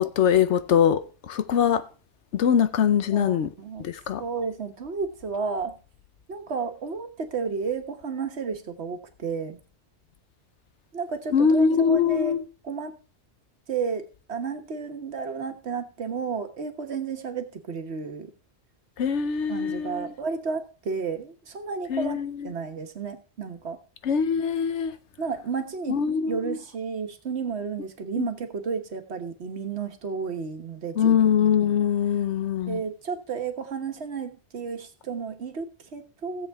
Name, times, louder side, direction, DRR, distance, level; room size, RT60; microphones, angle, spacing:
voice 1, 0.0-1.9 2.3-3.5 3.8-4.2 11.3-12.4 19.0-20.1 21.9-22.5 24.0-25.0 25.9-26.6 28.2-28.3 31.0-32.8, left 7 dB, 80° left, 1.1 m, -23 dB
voice 2, 3.1-3.8 4.2-5.7 6.3-9.6 10.9-12.4 12.6-12.9 13.7-18.3 19.5-22.2 22.4-23.8 25.2-26.0 26.3-31.1 32.7-36.5, right 5 dB, 70° right, 1.4 m, -32 dB
16.5 x 7.7 x 3.5 m
omnidirectional pair, 1.2 m